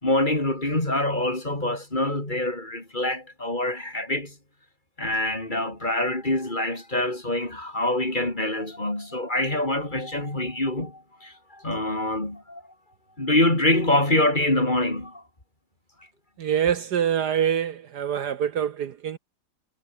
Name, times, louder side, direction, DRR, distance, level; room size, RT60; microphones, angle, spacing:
voice 1, 0.0-4.3 5.0-12.6 13.2-15.2, left 1 dB, 25° left, 4.4 m, -25 dB
voice 2, 16.4-19.2, right 9 dB, 65° right, 1.5 m, -25 dB
omnidirectional pair, 2.0 m